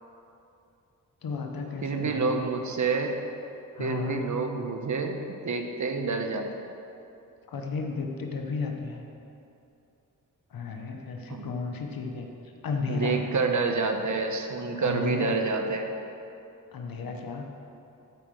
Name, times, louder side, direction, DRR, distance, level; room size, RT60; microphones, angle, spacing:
voice 1, 1.2-2.4 3.7-4.2 7.5-9.0 10.5-13.2 14.8-15.4 16.7-17.5, left 4 dB, 90° left, 2 dB, 1.1 m, -33 dB
voice 2, 1.8-3.2 3.8-6.7 11.3-11.5 12.9-15.9, right 4 dB, 60° right, 4 dB, 1.1 m, -28 dB
12.5 x 5.1 x 6.3 m, 2.8 s
cardioid pair, 60°, 34 cm